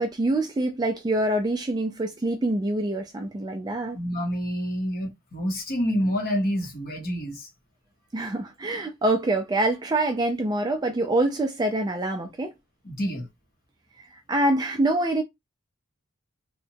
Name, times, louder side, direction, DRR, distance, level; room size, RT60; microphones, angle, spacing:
voice 1, 0.0-4.0 8.1-12.5 14.0-15.2, right 2 dB, 20° right, 0.3 m, -25 dB
voice 2, 3.9-7.5 12.8-13.3, equal, 45° left, 0.8 m, -28 dB
2.8 x 2.1 x 2.6 m
head